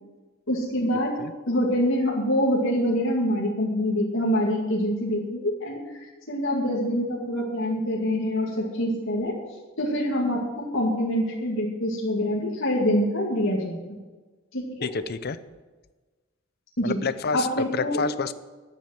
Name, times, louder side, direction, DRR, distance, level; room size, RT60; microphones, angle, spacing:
voice 1, 0.5-9.4 9.8-13.8 14.5-14.9 16.8-17.0 17.3-18.1, equal, 75° left, -5 dB, 2.3 m, -25 dB
voice 2, 14.8-15.4 16.8-18.3, left 4 dB, 50° left, 14 dB, 0.6 m, -29 dB
10.5 x 9.1 x 7.7 m, 1.3 s
head